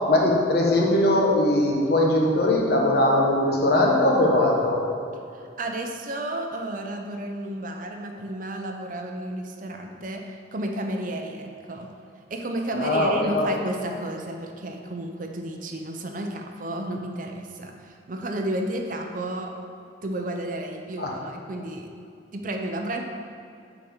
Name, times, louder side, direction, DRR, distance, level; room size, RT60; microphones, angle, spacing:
voice 1, 0.1-4.8 12.7-13.5 21.0-21.1, left 1 dB, 60° left, -2 dB, 1.2 m, -20 dB
voice 2, 5.3-11.9 12.3-19.5 20.0-21.9 22.3-23.1, right 1 dB, 50° right, 3 dB, 0.7 m, -32 dB
7.0 x 5.2 x 5.1 m, 2.5 s
head